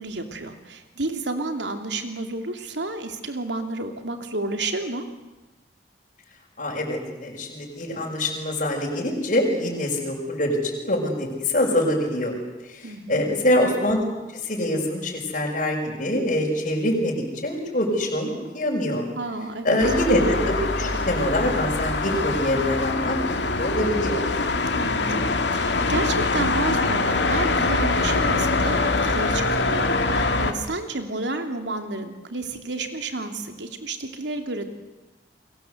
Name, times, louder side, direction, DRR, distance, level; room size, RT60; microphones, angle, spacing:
voice 1, 0.0-5.1 12.8-13.2 19.1-19.8 24.7-34.7, right 2 dB, 90° right, 6 dB, 3.0 m, -31 dB
voice 2, 6.6-12.3 12.7-14.0 14.4-17.1 17.4-19.1 19.6-23.2 23.6-24.3, left 1 dB, 45° left, -2 dB, 5.8 m, -24 dB
sound 1, 19.8-30.5, left 3 dB, 85° left, 2.2 m, -24 dB
30.0 x 22.5 x 8.1 m, 1.1 s
head